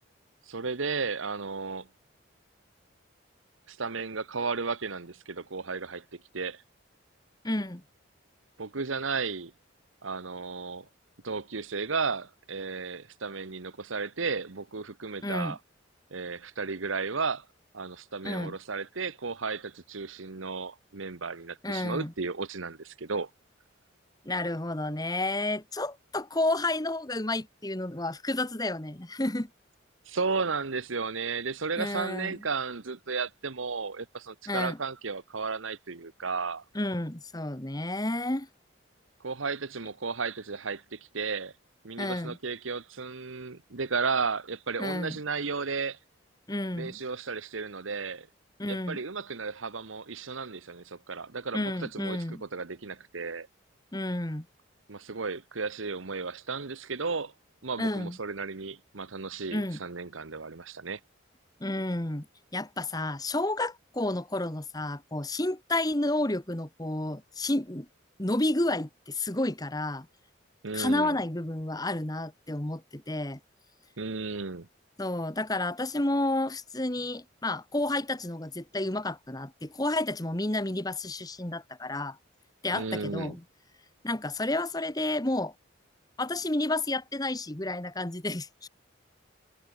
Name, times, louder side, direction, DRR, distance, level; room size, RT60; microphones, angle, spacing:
voice 1, 0.5-1.9 3.7-6.6 8.6-9.5 10.0-10.9 11.2-15.6 16.1-17.4 17.7-23.3 30.1-36.6 39.2-41.5 41.8-46.0 46.8-48.3 48.7-53.5 54.9-57.3 57.6-61.0 70.6-71.2 74.0-74.7 82.7-83.4, right 4 dB, 80° right, 1.2 m, -34 dB
voice 2, 7.4-7.8 15.2-15.5 18.2-18.5 21.6-22.1 24.2-29.5 31.8-32.4 34.5-34.8 36.7-38.5 42.0-42.4 44.8-45.2 46.5-47.0 48.6-49.0 51.5-52.4 53.9-54.4 57.8-58.2 59.5-59.8 61.6-62.3 62.5-67.9 68.2-70.1 70.7-73.4 75.0-82.2 82.6-83.4 84.0-85.5 86.2-88.7, left 2 dB, 20° left, 1.4 m, -31 dB
head